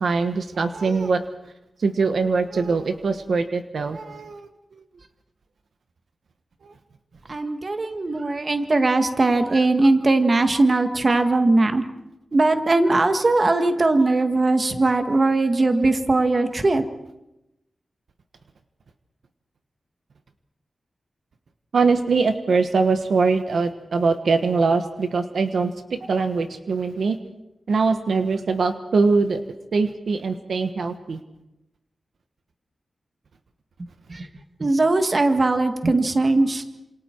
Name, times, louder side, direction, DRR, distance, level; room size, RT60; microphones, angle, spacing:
voice 1, 0.0-1.2 1.8-4.5 21.7-27.2 27.7-29.4 29.7-31.2, right 4 dB, 70° right, 8 dB, 1.3 m, -22 dB
voice 2, 7.3-11.8 12.3-16.8 33.8-34.3 34.6-36.6, right 2 dB, 35° right, 7 dB, 1.7 m, -20 dB
28.5 x 27.5 x 4.6 m, 0.91 s
wide cardioid pair, 140°, 0 cm